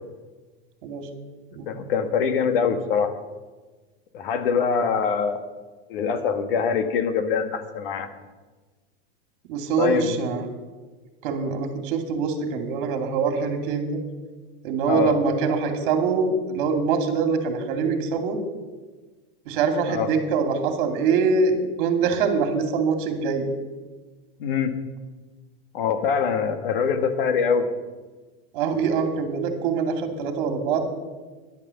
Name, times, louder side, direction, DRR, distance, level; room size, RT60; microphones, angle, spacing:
voice 1, 1.7-3.1 4.1-5.4 5.9-8.1 9.8-10.2 14.9-15.2 19.9-20.1 24.4-24.7 25.7-27.7, left 6 dB, 60° left, 8 dB, 1.6 m, -23 dB
voice 2, 9.5-10.5 11.2-14.0 14.6-18.4 19.5-23.5 28.5-30.9, right 5 dB, 50° right, 5 dB, 2.4 m, -24 dB
13.0 x 10.5 x 7.0 m, 1.3 s
supercardioid pair, 175°, 31 cm